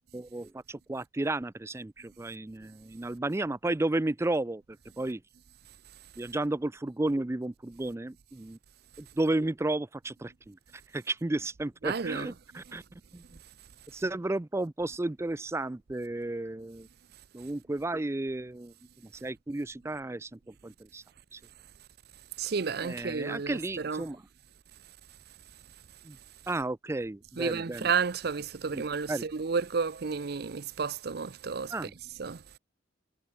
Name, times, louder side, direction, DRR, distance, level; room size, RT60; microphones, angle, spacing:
voice 1, 0.0-5.2 6.2-8.6 9.0-10.6 10.9-12.8 13.1-13.2 13.9-16.9 17.3-18.7 19.2-21.0 21.3-21.4 22.8-24.2 26.0-26.2 26.5-27.9 28.7-29.3 31.7-31.9, right 2 dB, 15° right, 0.4 m, -33 dB
voice 2, 11.8-12.3 22.4-24.1 27.4-31.9 32.2-32.4, right 5 dB, 60° right, 0.6 m, -32 dB
head